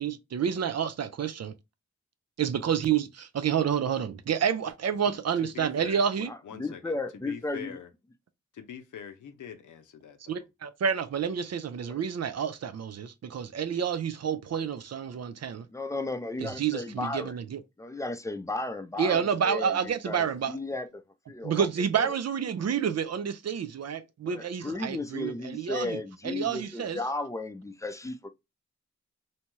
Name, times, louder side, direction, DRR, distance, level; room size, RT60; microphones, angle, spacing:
voice 1, 0.0-1.5 2.4-6.3 10.3-15.7 16.4-17.6 19.0-20.6 21.4-27.0, right 7 dB, 60° right, 0.5 m, -29 dB
voice 2, 5.5-7.0 7.3-7.9 8.5-10.4, left 8 dB, 85° left, 0.6 m, -44 dB
voice 3, 6.3-7.8 11.9-12.0 15.7-17.3 17.8-19.8 20.1-20.9 21.3-21.7 22.0-22.1 24.3-28.3, left 2 dB, 10° left, 0.5 m, -34 dB
2.8 x 2.2 x 3.0 m
cardioid pair, 50°, 29 cm